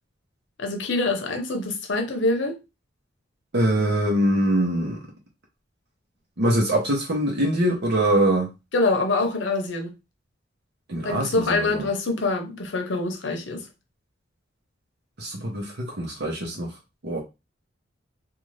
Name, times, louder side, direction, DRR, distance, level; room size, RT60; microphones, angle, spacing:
voice 1, 0.6-2.6 8.7-9.9 11.0-13.7, left 2 dB, 70° left, 0.7 m, -25 dB
voice 2, 3.5-5.0 6.4-8.5 10.9-11.9 15.2-16.8 17.0-17.2, right 1 dB, 60° right, 0.9 m, -23 dB
2.6 x 2.4 x 3.1 m
head